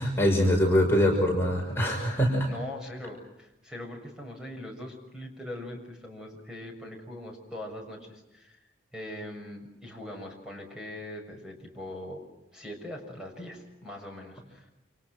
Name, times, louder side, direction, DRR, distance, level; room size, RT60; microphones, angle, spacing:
voice 1, 0.0-2.5, equal, 15° left, -1 dB, 5.8 m, -23 dB
voice 2, 2.5-8.6 8.9-12.2 12.5-14.6, left 1 dB, 5° right, 0 dB, 6.8 m, -41 dB
29.5 x 28.0 x 6.2 m, 0.89 s
head